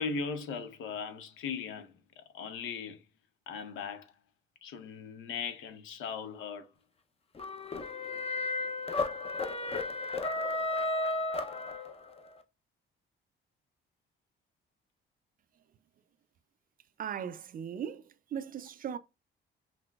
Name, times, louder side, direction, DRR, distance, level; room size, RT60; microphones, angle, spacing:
voice 1, 0.0-3.0 3.5-4.1 4.6-6.7, left 5 dB, 85° left, 0.7 m, -38 dB
sound 1, 7.4-12.2, left 2 dB, 30° left, 0.5 m, -33 dB
voice 2, 17.0-18.0 18.3-19.0, right 8 dB, 45° right, 0.4 m, -37 dB
5.8 x 2.1 x 2.2 m
cardioid pair, 90°, 20 cm